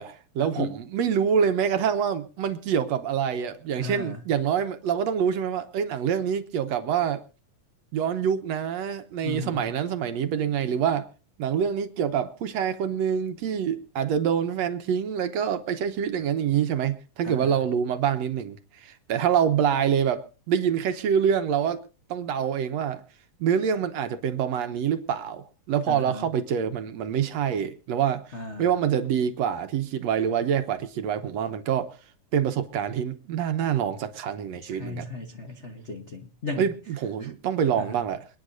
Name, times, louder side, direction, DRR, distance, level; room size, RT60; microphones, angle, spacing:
voice 1, 0.0-7.2 7.9-11.1 11.4-21.8 22.1-23.0 23.4-28.2 28.6-31.9 32.3-35.1 36.6-38.2, right 8 dB, 70° right, 1.9 m, -26 dB
voice 2, 3.8-4.3 9.2-9.7 17.2-17.6 25.9-26.3 28.3-28.7 34.6-36.7 37.2-37.3 37.8-38.0, left 2 dB, 60° left, 0.7 m, -36 dB
28.0 x 9.7 x 2.6 m
omnidirectional pair, 3.6 m